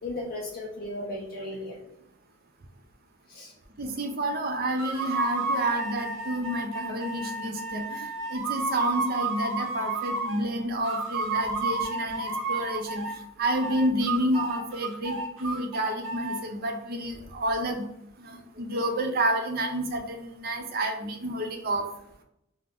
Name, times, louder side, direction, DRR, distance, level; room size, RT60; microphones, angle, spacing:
voice 1, 0.0-1.9 3.3-3.5, left 1 dB, 50° left, -2 dB, 0.4 m, -36 dB
voice 2, 3.8-13.0 13.4-17.9 18.2-21.9, right 1 dB, 50° right, 3 dB, 0.5 m, -29 dB
sound 1, 4.8-10.4 10.8-13.2 13.5-16.4, right 3 dB, 85° right, 0.7 m, -32 dB
2.5 x 2.1 x 3.4 m, 0.78 s
head